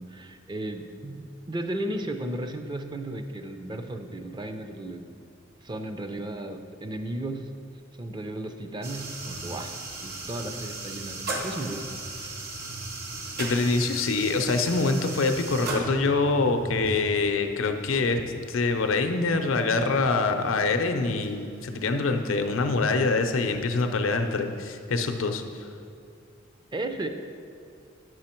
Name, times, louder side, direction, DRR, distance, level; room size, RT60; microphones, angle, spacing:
voice 1, 0.0-5.0 5.6-7.5 8.0-9.7 10.0-11.8 12.1-12.5 26.7-27.1, right 1 dB, 25° right, 7 dB, 0.4 m, -35 dB
sound 1, 8.8-24.8, right 2 dB, 50° right, 1.0 m, -38 dB
voice 2, 13.4-18.2 18.5-25.4, left 3 dB, 85° left, 6 dB, 0.6 m, -25 dB
8.1 x 6.2 x 4.4 m, 2.4 s
head